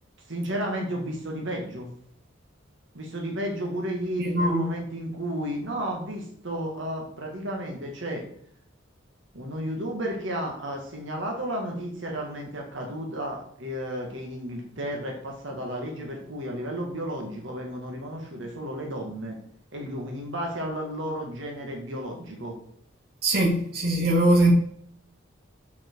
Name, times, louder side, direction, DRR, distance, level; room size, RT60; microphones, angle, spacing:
voice 1, 0.3-1.9 2.9-8.3 9.3-19.4 19.7-22.6, equal, 65° right, 1.8 m, -33 dB
voice 2, 4.2-4.7 23.2-24.5, right 1 dB, 50° right, 1.9 m, -21 dB
7.3 x 6.1 x 4.6 m
head